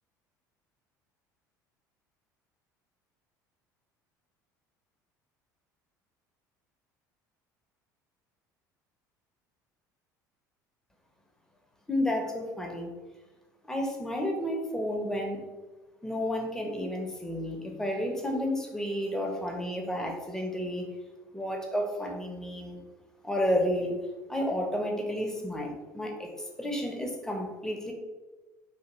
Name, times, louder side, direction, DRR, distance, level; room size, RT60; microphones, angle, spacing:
voice 1, 11.9-12.9 13.6-15.4 16.0-20.9 21.3-22.8 23.2-24.0 24.3-26.3 26.6-27.9, equal, 5° left, 1 dB, 0.7 m, -31 dB
3.4 x 2.6 x 3.0 m, 1.2 s
figure-of-eight pair, 65°, 10 cm